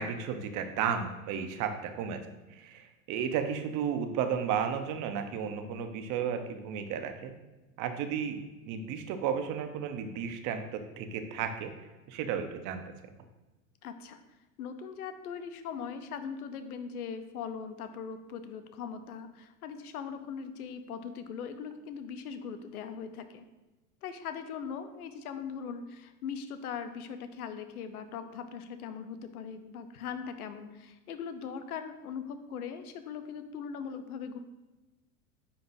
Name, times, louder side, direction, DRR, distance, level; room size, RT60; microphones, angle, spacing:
voice 1, 0.0-7.3 7.8-8.4 8.6-11.7 12.1-12.8, right 7 dB, 45° right, 7 dB, 0.8 m, -33 dB
voice 2, 13.8-14.2 14.6-23.4 24.0-34.4, left 6 dB, 90° left, 9 dB, 0.8 m, -40 dB
9.7 x 3.9 x 2.6 m, 1.1 s
hypercardioid pair, 110°, 43 cm